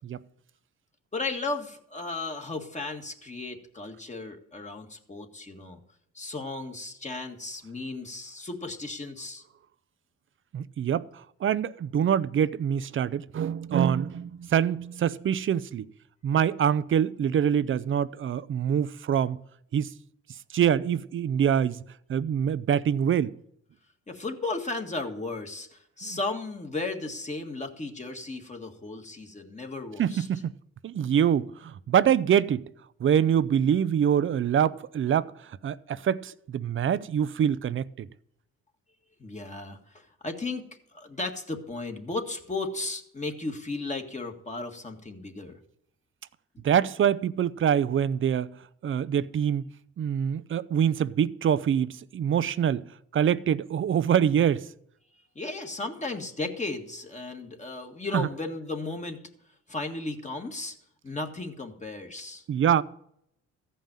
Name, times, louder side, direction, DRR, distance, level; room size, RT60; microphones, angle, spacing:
voice 1, 1.1-5.8 6.1-9.4 24.1-30.3 39.2-45.6 46.5-46.6 55.4-59.2 59.7-60.8 61.0-62.4, left 3 dB, 25° left, 1.9 m, -35 dB
voice 2, 10.5-11.0 11.4-15.8 16.2-19.4 19.7-19.9 20.5-21.8 22.1-23.3 26.0-26.2 30.0-30.5 30.8-32.6 33.0-35.3 35.6-38.1 46.6-48.5 48.8-49.6 50.0-52.8 53.1-54.6 62.5-62.8, right 9 dB, 40° right, 0.6 m, -25 dB
14.5 x 5.5 x 8.9 m
cardioid pair, 90°, 30 cm